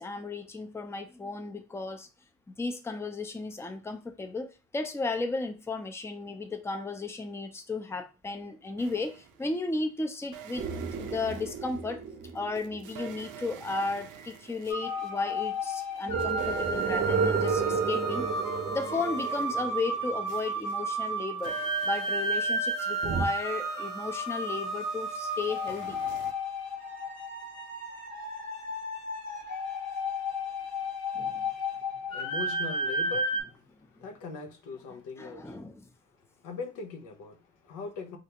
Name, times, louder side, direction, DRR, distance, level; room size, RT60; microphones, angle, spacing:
voice 1, 0.0-2.1 2.6-10.7 11.0-12.0 12.3-18.3 18.7-21.6 21.8-26.0 31.1-31.5 34.0-34.1 35.2-35.8, left 3 dB, 10° left, 0.4 m, -34 dB
sound 1, 8.8-9.7 10.3-15.7 16.0-26.3, right 8 dB, 85° right, 0.5 m, -46 dB
sound 2, 10.6-14.0 16.1-20.7 23.0-23.3, right 5 dB, 35° right, 0.6 m, -32 dB
sound 3, 14.7-33.4, equal, 65° left, 1.0 m, -33 dB
voice 2, 31.5-35.6 36.2-38.2, left 4 dB, 90° left, 0.6 m, -41 dB
3.2 x 2.4 x 2.9 m
cardioid pair, 90°, 30 cm